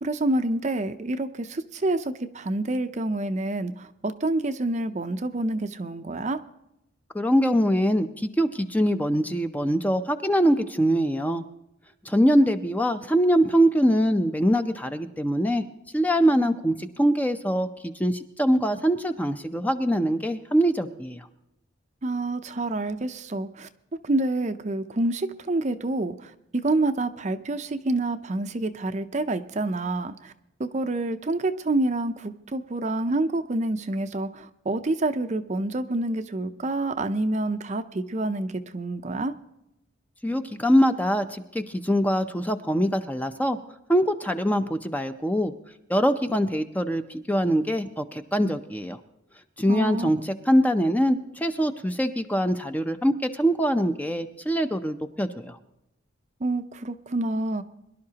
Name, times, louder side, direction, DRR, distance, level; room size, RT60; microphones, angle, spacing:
voice 1, 0.0-6.4 22.0-23.7 24.0-30.3 30.6-39.3 49.7-50.1 56.4-57.6, right 2 dB, 35° right, 9 dB, 0.6 m, -27 dB
voice 2, 7.1-11.4 12.0-15.6 15.9-21.3 40.2-43.6 43.9-45.5 45.9-49.0 49.6-55.6, equal, 10° left, 8 dB, 0.6 m, -23 dB
23.0 x 11.5 x 2.9 m, 0.86 s
head